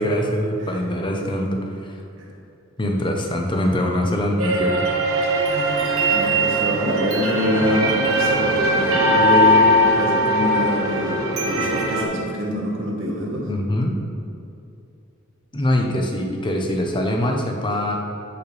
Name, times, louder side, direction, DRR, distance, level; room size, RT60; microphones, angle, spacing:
voice 1, 0.0-2.0 2.8-4.9 13.4-14.0 15.5-18.0, left 1 dB, 25° left, 1 dB, 0.8 m, -23 dB
sound 1, 4.4-12.0, equal, 90° right, 1.1 m, -20 dB
voice 2, 6.1-13.5, equal, 65° right, -1 dB, 1.4 m, -25 dB
10.5 x 5.7 x 3.3 m, 2.6 s
head